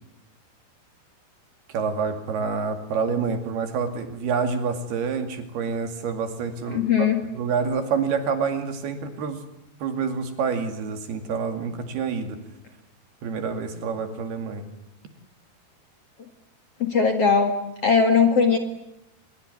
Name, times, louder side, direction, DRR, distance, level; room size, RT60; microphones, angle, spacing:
voice 1, 1.7-9.4 9.8-12.4 13.2-14.7, right 5 dB, 70° right, 7 dB, 4.3 m, -27 dB
voice 2, 6.7-7.2 16.8-17.5 17.8-18.6, left 5 dB, 45° left, 6 dB, 2.3 m, -19 dB
24.5 x 22.0 x 9.7 m, 0.90 s
omnidirectional pair, 4.8 m